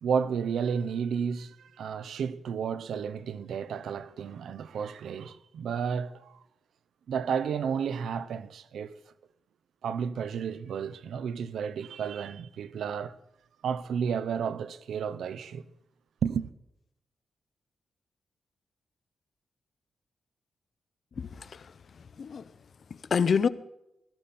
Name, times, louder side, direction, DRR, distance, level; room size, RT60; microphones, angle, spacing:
voice 1, 0.0-6.4 7.1-9.0 9.8-13.1 13.6-15.6 16.2-16.5, right 7 dB, 80° right, 0.7 m, -32 dB
voice 2, 21.2-22.5 23.1-23.5, left 6 dB, 55° left, 0.8 m, -28 dB
17.0 x 13.5 x 4.3 m
cardioid pair, 80°, 0 cm